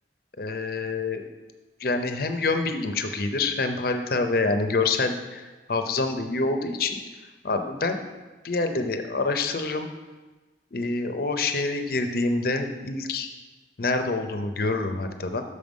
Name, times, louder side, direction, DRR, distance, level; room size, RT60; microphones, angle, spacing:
voice 1, 0.4-1.3 1.8-7.0 7.4-8.0 8.4-9.9 10.7-13.3 13.8-15.4, left 3 dB, 55° left, 7 dB, 0.6 m, -26 dB
6.7 x 5.4 x 5.1 m, 1.2 s
head